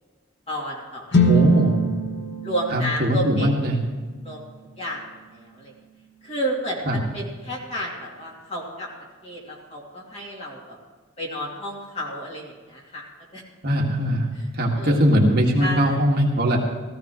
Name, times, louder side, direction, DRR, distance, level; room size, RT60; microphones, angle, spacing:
voice 1, 0.5-1.2 2.4-3.5 4.2-4.4 4.8-5.0 5.3-5.7 6.2-8.9 9.2-10.8 11.2-13.0 13.3-13.4 14.8-15.0 15.6-15.9, equal, 30° left, -3 dB, 2.7 m, -31 dB
sound 1, 1.1-5.2, right 1 dB, 55° left, 1.1 m, -24 dB
voice 2, 1.2-1.8 2.7-3.8 6.9-7.0 13.6-14.3 14.5-16.6, equal, 50° right, -1 dB, 1.8 m, -20 dB
17.5 x 14.5 x 3.1 m, 1.4 s
head